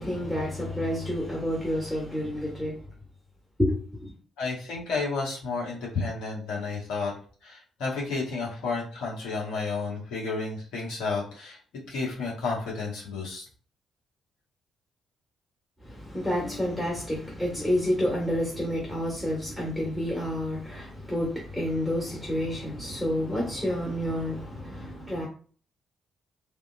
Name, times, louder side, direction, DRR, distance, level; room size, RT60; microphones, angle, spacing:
voice 1, 0.0-2.8 3.6-4.1 15.8-25.3, left 1 dB, 5° left, 1.4 m, -29 dB
voice 2, 4.4-7.1 7.4-11.6 11.9-13.5, left 4 dB, 65° left, 1.3 m, -31 dB
3.4 x 2.6 x 2.4 m
figure-of-eight pair, 40°, 0 cm